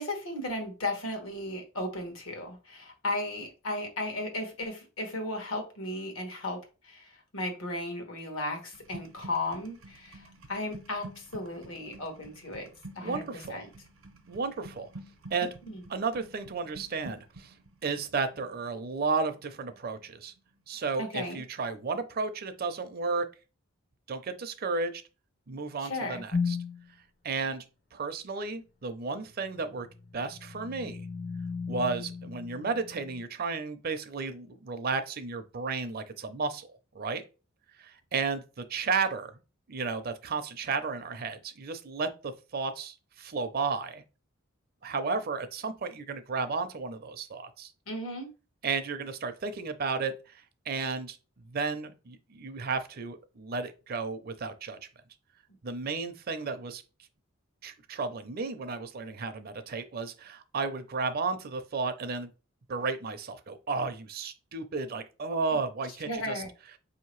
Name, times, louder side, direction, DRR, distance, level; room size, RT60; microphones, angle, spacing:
voice 1, 0.0-12.7 12.9-13.7 15.7-15.8 21.0-21.4 25.8-26.2 47.9-48.3 66.1-66.5, left 1 dB, 75° left, 1.1 m, -35 dB
sound 1, 8.7-20.6 20.9-21.3, right 2 dB, 80° right, 0.7 m, -50 dB
voice 2, 13.0-13.6 14.3-14.9 15.3-15.5 15.9-17.5 17.8-20.3 20.7-23.3 24.1-25.0 25.5-26.6 27.2-27.6 27.9-29.9 30.1-31.1 31.7-37.2 37.8-39.3 39.7-44.0 44.8-47.7 48.6-54.8 55.6-56.8 57.6-62.3 62.7-66.4, right 4 dB, 45° right, 0.5 m, -33 dB
sound 2, 26.3-26.9 29.7-33.2, left 5 dB, 40° left, 0.5 m, -35 dB
4.9 x 2.8 x 3.1 m
head